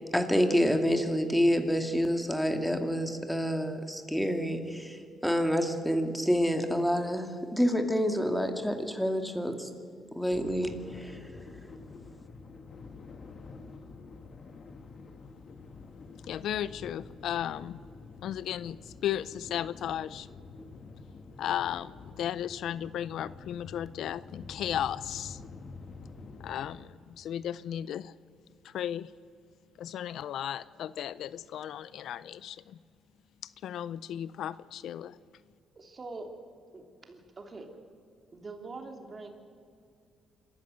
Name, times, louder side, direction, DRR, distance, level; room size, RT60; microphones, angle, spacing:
voice 1, 0.1-9.7 10.1-11.5, equal, 5° left, 6 dB, 2.3 m, -28 dB
sound 1, 10.3-26.8, left 4 dB, 45° left, 1.8 m, -48 dB
voice 2, 16.3-17.8 18.2-20.3 21.4-25.4 26.4-28.2 28.6-29.1 29.8-32.8 33.4-35.2, left 10 dB, 75° left, 17 dB, 0.5 m, -35 dB
voice 3, 35.8-37.7 38.3-39.3, right 3 dB, 35° right, 4 dB, 3.0 m, -44 dB
26.0 x 14.0 x 8.0 m, 2.3 s
cardioid pair, 90°, 0 cm